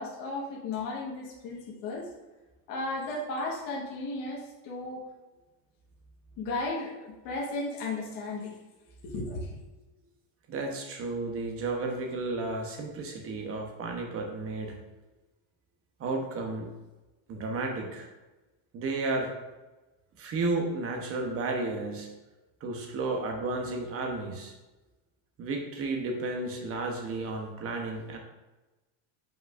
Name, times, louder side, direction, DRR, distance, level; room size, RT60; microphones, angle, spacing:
voice 1, 0.0-2.1 2.7-5.0 6.4-8.6 9.0-9.6, left 2 dB, 40° left, -4 dB, 1.4 m, -35 dB
voice 2, 10.5-14.7 16.0-16.7 17.3-18.1 18.7-19.3 20.2-22.1 22.6-24.5 25.4-28.2, right 3 dB, 30° right, 2 dB, 0.8 m, -32 dB
8.0 x 5.4 x 2.5 m, 1.1 s
cardioid pair, 175°, 50 cm